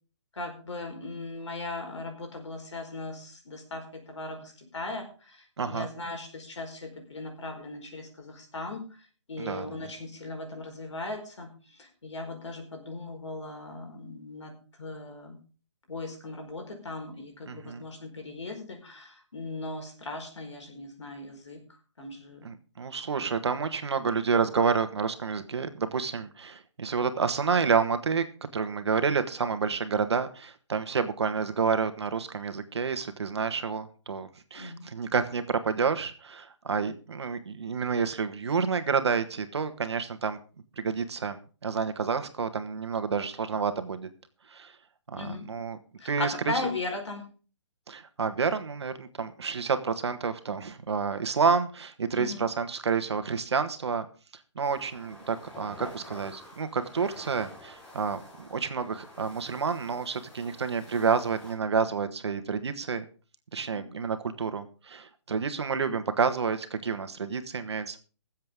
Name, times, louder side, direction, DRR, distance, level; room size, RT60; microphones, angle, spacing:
voice 1, 0.3-8.9 9.3-14.5 14.8-15.4 15.9-21.6 22.0-22.5 23.1-23.3 34.5-34.9 45.2-45.5 46.0-47.3 52.1-52.4, left 2 dB, 80° left, 3 dB, 4.6 m, -38 dB
voice 2, 5.6-5.9 9.4-9.8 17.5-17.8 22.4-28.2 28.5-40.4 40.8-44.1 44.5-44.7 45.1-45.8 46.0-46.5 47.9-54.0 54.5-63.0 63.5-68.0, right 5 dB, 65° right, 9 dB, 1.5 m, -29 dB
sound 1, 54.6-61.5, left 1 dB, 10° left, 1.4 m, -48 dB
21.5 x 7.6 x 3.6 m, 0.36 s
hypercardioid pair, 175°, 15 cm